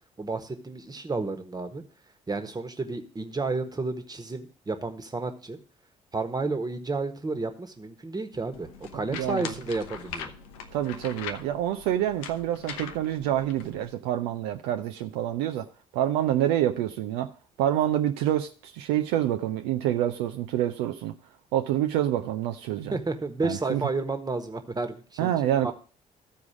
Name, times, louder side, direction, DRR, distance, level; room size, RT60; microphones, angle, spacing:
voice 1, 0.2-1.8 2.3-5.6 6.1-10.3 22.9-25.3 25.6-25.7, right 3 dB, 20° right, 7 dB, 1.4 m, -31 dB
sound 1, 8.5-13.9, left 7 dB, 70° left, 0.7 m, -41 dB
voice 2, 8.9-9.5 10.7-15.7 15.9-17.3 17.6-21.1 21.5-23.0 23.4-23.8 25.2-25.7, right 12 dB, 65° right, 6 dB, 0.5 m, -27 dB
14.0 x 4.7 x 4.9 m, 0.39 s
figure-of-eight pair, 45°, 18 cm